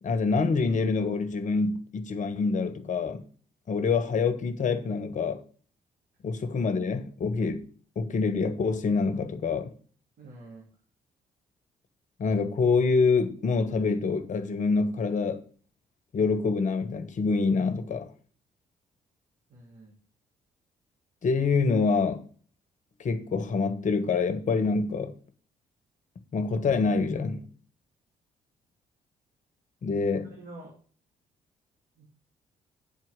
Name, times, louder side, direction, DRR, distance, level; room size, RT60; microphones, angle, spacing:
voice 1, 0.0-3.2 3.7-5.4 6.2-7.7 7.9-9.7 12.2-15.4 16.1-18.1 21.2-22.3 23.0-25.2 26.3-27.5 29.8-30.3, left 4 dB, 55° left, 1.4 m, -26 dB
voice 2, 10.2-10.7 19.5-19.9 29.8-30.8 32.0-32.1, right 2 dB, 70° right, 2.6 m, -47 dB
9.1 x 4.6 x 7.5 m
hypercardioid pair, 50°, 15 cm